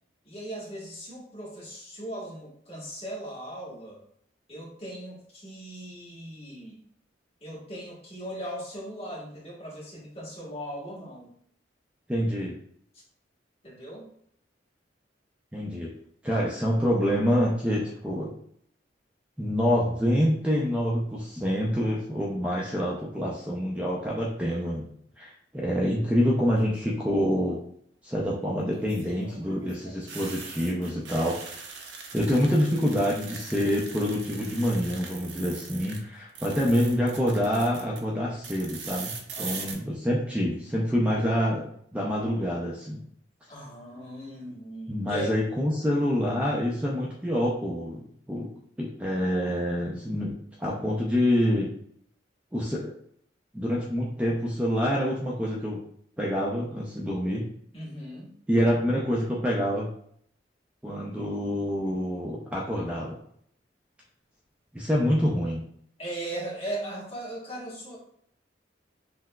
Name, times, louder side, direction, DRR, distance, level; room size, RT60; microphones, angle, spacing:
voice 1, 0.2-4.0 4.5-6.8 7.4-11.3 13.6-14.1 39.3-39.7 43.5-45.3 57.7-58.3 66.0-68.0, right 1 dB, 35° left, -6 dB, 1.2 m, -38 dB
voice 2, 12.1-12.5 15.5-15.9 16.2-18.3 19.4-24.9 25.2-27.6 28.0-31.4 32.1-43.0 44.9-48.5 48.8-51.7 52.5-52.9 53.5-55.8 56.2-57.5 58.5-59.9 60.8-63.2 64.7-65.6, equal, 5° right, -4 dB, 0.4 m, -26 dB
sound 1, 26.4-26.9 28.7-36.0 36.3-38.0 38.4-39.7, right 5 dB, 80° right, 0.6 m, -41 dB
5.7 x 2.0 x 2.2 m, 0.66 s
head